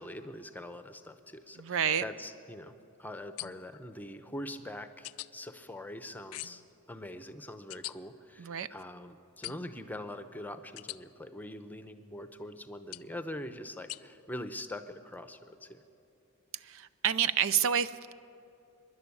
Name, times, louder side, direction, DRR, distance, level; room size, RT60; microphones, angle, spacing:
voice 1, 0.0-2.7 3.0-6.6 6.9-15.8, left 1 dB, 10° left, 9 dB, 0.8 m, -43 dB
voice 2, 1.6-2.0 8.4-8.7 16.6-18.1, right 8 dB, 60° right, 15 dB, 0.5 m, -29 dB
sound 1, 3.4-3.8 5.0-5.3 6.3-6.7 7.7-7.9 9.4-9.8 10.8-11.0 12.9-13.2 13.9-14.0, left 17 dB, 90° left, 0.4 m, -42 dB
24.0 x 11.0 x 9.8 m, 2.7 s
head